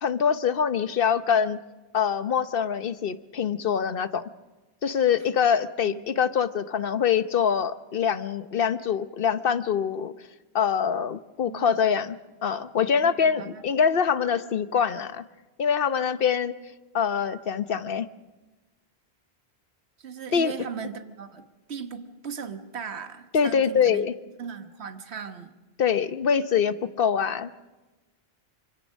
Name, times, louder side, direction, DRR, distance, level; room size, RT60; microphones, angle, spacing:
voice 1, 0.0-1.6 1.9-4.2 4.8-10.1 10.5-12.2 12.4-15.2 15.6-16.5 16.9-18.1 20.3-20.5 23.3-24.1 25.8-27.5, left 7 dB, 60° left, 12 dB, 1.1 m, -24 dB
voice 2, 11.4-11.8 13.0-13.6 20.0-24.0 24.4-25.5, right 7 dB, 80° right, 8 dB, 1.5 m, -38 dB
25.0 x 24.5 x 6.4 m, 1.2 s
omnidirectional pair, 1.1 m